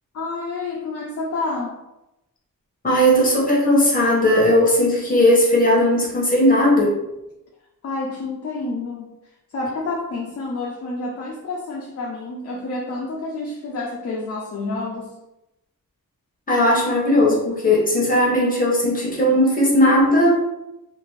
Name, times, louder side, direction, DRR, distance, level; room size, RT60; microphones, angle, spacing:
voice 1, 0.1-1.8 7.8-9.1 9.5-15.1, left 3 dB, 45° left, -3 dB, 0.4 m, -29 dB
voice 2, 2.8-6.9 16.5-20.4, left 1 dB, 25° left, -4 dB, 0.8 m, -17 dB
2.5 x 2.5 x 3.1 m, 0.91 s
wide cardioid pair, 160°, 35 cm